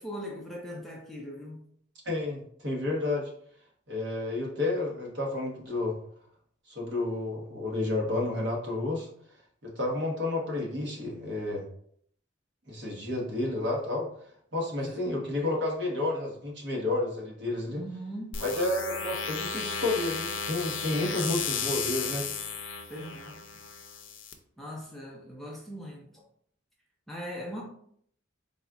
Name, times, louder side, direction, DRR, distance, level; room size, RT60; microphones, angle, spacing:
voice 1, 0.0-1.7 14.7-15.1 17.7-18.5 20.9-21.4 22.9-23.6 24.6-26.2 27.1-27.6, equal, ahead, -3 dB, 0.5 m, -40 dB
voice 2, 2.0-3.3 3.9-6.0 6.7-9.1 9.6-11.6 12.7-14.1 14.5-17.8 18.4-22.3, left 2 dB, 60° right, -2 dB, 1.1 m, -31 dB
sound 1, 18.3-24.3, left 6 dB, 70° left, 0.5 m, -34 dB
4.0 x 2.4 x 3.7 m, 0.64 s
head